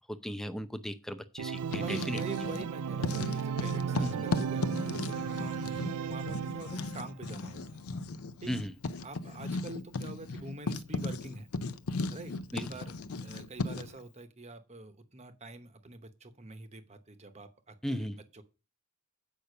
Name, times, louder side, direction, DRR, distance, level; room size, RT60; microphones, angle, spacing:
voice 1, 0.1-2.2 4.0-4.3 8.5-8.7 12.5-12.7 17.8-18.2, equal, ahead, 0.6 m, -36 dB
Organ, 1.4-7.1, right 7 dB, 90° right, 0.4 m, -35 dB
Writing, 1.6-2.7 3.0-14.0, left 3 dB, 75° left, 0.6 m, -36 dB
voice 2, 1.8-5.7 6.0-7.8 8.4-8.5 9.0-11.5 12.1-12.9 13.2-18.4, right 2 dB, 30° right, 0.9 m, -45 dB
8.3 x 5.6 x 6.5 m
head